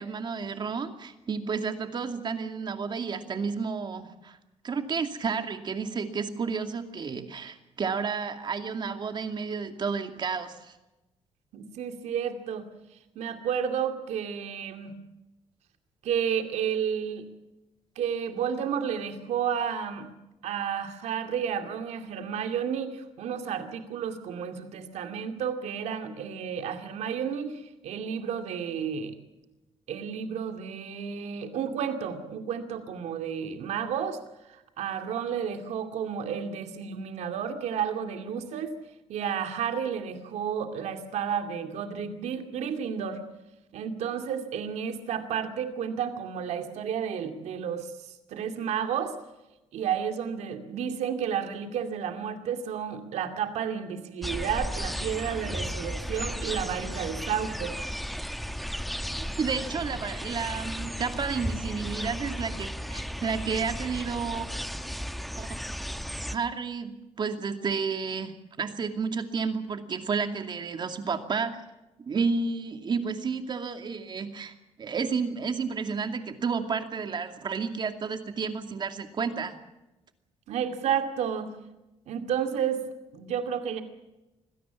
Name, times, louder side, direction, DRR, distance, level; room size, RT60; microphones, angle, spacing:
voice 1, 0.0-4.4 4.6-10.7 59.4-64.5 65.4-65.5 66.3-71.6 72.0-74.5 74.8-79.6, right 5 dB, 40° right, 7 dB, 2.4 m, -31 dB
voice 2, 11.5-12.7 13.2-14.9 16.0-17.2 18.0-20.1 20.4-29.1 29.9-34.2 34.4-38.7 39.1-43.2 43.7-47.9 48.3-49.2 49.7-57.8 80.5-81.5 82.1-82.8 83.1-83.8, right 8 dB, 80° right, 7 dB, 2.3 m, -31 dB
sound 1, 54.2-66.4, equal, ahead, 1.2 m, -34 dB
25.0 x 17.0 x 7.1 m, 0.99 s
cardioid pair, 120°, 11 cm